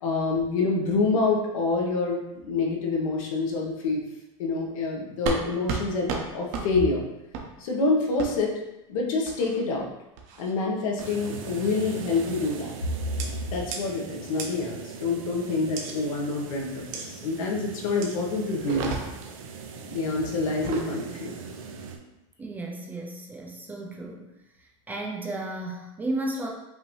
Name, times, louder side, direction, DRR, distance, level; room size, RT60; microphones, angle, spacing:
voice 1, 0.0-4.0 4.4-7.0 7.6-8.6 8.9-9.9 10.4-12.7 13.5-18.9 19.9-21.3, left 3 dB, 80° left, 0 dB, 1.1 m, -27 dB
sound 1, 5.3-5.4 5.7-5.8 6.1-6.2 6.5-6.7 7.3-7.5 8.2-8.3 9.3-9.6 10.2-10.5 11.0-11.3 12.1-12.4 13.2-13.3 13.7-13.8 14.4-14.5 15.8-15.9 16.9-17.1 18.0-18.2 18.6-19.3 20.5-20.9, right 5 dB, 45° right, 0.7 m, -32 dB
sound 2, 11.0-22.0, right 5 dB, 85° right, 0.7 m, -40 dB
voice 2, 22.4-24.3 24.6-26.5, right 2 dB, 10° right, 0 dB, 0.3 m, -34 dB
5.4 x 2.7 x 3.1 m, 0.93 s
supercardioid pair, 170°, 17 cm